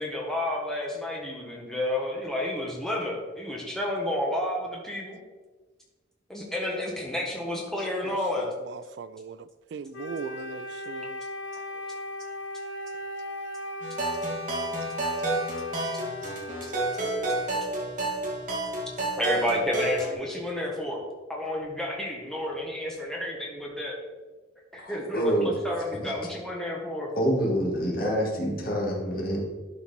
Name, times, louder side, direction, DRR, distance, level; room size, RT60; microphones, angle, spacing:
voice 1, 0.0-5.2 6.3-8.5 19.2-21.0 21.3-24.0 24.7-27.1, left 1 dB, 5° left, 1.5 m, -31 dB
voice 2, 8.0-11.2, right 6 dB, 60° right, 0.3 m, -40 dB
Wind instrument woodwind instrument, 9.9-17.6, left 1 dB, 80° left, 0.7 m, -37 dB
sound 1, 13.8-20.1, right 2 dB, 40° right, 2.2 m, -30 dB
voice 3, 24.8-25.5 26.0-26.1 27.2-29.4, equal, 50° left, 2.0 m, -26 dB
11.5 x 4.4 x 4.3 m
head